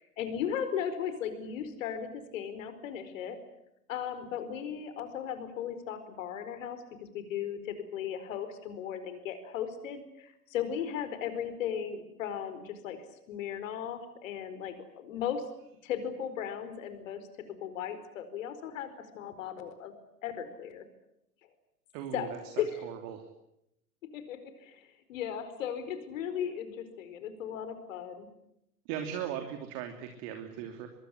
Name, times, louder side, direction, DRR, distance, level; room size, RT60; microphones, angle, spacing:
voice 1, 0.0-3.4 3.9-6.8 7.1-13.0 13.3-15.4 15.8-17.3 17.6-19.9 20.2-20.8 22.1-22.8 24.1-28.3, left 8 dB, 55° left, 11 dB, 4.6 m, -36 dB
voice 2, 21.9-22.4 22.8-23.2 28.8-30.9, right 9 dB, 40° right, 5 dB, 3.1 m, -38 dB
25.0 x 22.0 x 10.0 m, 0.83 s
figure-of-eight pair, 100°, 48 cm